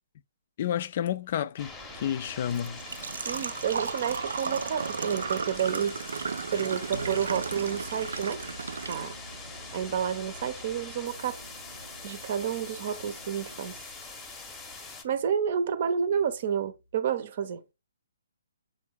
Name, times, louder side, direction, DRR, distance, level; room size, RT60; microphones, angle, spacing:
voice 1, 0.6-2.8, left 10 dB, 40° left, 0.4 m, -30 dB
sound 1, 1.6-15.0, left 3 dB, 10° left, 0.8 m, -44 dB
Engine / Trickle dribble / Fill (with liquid), 1.8-13.8, right 5 dB, 60° right, 0.3 m, -37 dB
voice 2, 3.2-6.0 6.5-8.4 8.9-9.1 9.7-11.4 12.0-13.8 15.0-17.6, right 8 dB, 45° right, 0.7 m, -30 dB
sound 2, 6.9-17.0, equal, 85° right, 1.0 m, -49 dB
3.8 x 3.4 x 3.4 m
figure-of-eight pair, 130°, 0 cm